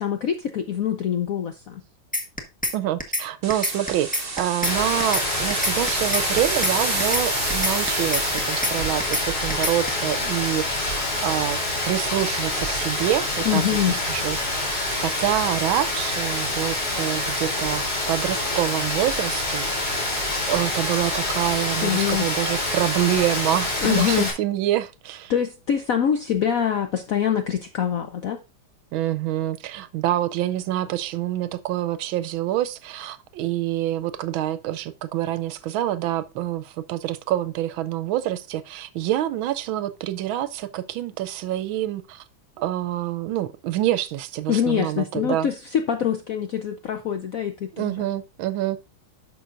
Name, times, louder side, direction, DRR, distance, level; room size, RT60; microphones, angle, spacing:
voice 1, 0.0-1.8 13.4-14.0 21.8-22.3 23.8-24.3 25.3-28.4 44.5-48.0, left 9 dB, 70° left, 0.8 m, -24 dB
sound 1, 2.1-2.7 3.0-3.2 3.5-4.7 5.0-5.2 5.5-6.7 7.0-7.2 7.5-8.7 9.0-9.2 9.5-9.9, left 1 dB, 5° left, 0.8 m, -25 dB
voice 2, 2.7-11.6 11.9-19.7 20.5-25.3 28.9-42.2 42.6-45.5 47.8-48.8, right 13 dB, 80° right, 1.4 m, -26 dB
sound 2, 3.4-9.1, right 3 dB, 30° right, 1.7 m, -30 dB
Rain, 4.6-24.3, left 1 dB, 50° left, 3.7 m, -26 dB
11.0 x 6.4 x 2.5 m
omnidirectional pair, 2.2 m